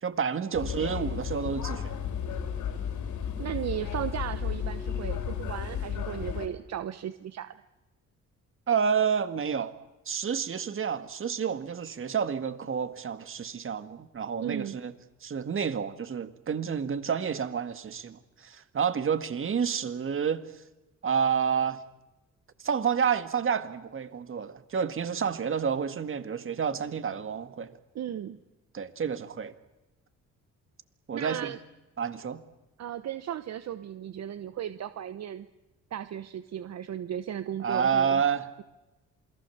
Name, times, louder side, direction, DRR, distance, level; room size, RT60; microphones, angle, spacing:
voice 1, 0.0-1.9 8.7-9.7 10.1-14.9 15.2-20.5 21.0-21.8 22.6-27.8 28.7-29.5 31.1-31.5 32.0-32.4 37.6-38.6, right 7 dB, 45° right, 1.9 m, -29 dB
sound 1, 0.5-6.5, left 8 dB, 75° left, 4.3 m, -33 dB
voice 2, 3.4-7.6 14.4-14.8 27.9-28.4 31.1-31.6 32.8-35.5 35.9-38.2, right 10 dB, 60° right, 1.1 m, -35 dB
27.5 x 22.0 x 7.2 m
cardioid pair, 90°, 30 cm